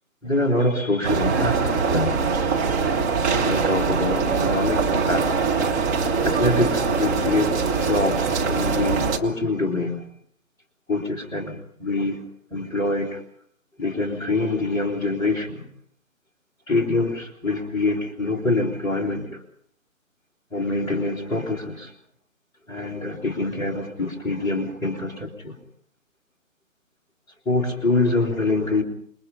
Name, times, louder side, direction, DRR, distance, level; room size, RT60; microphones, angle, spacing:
voice 1, 0.2-2.2 3.3-5.4 6.2-10.1 10.9-12.2 12.5-13.2 13.8-15.6 16.7-19.4 20.5-21.9 22.7-25.5 27.4-28.8, left 2 dB, 10° left, -4 dB, 3.1 m, -25 dB
sound 1, 1.0-9.2, right 5 dB, 10° right, 1.2 m, -22 dB
28.0 x 22.0 x 5.5 m, 0.65 s
figure-of-eight pair, 145°, 41 cm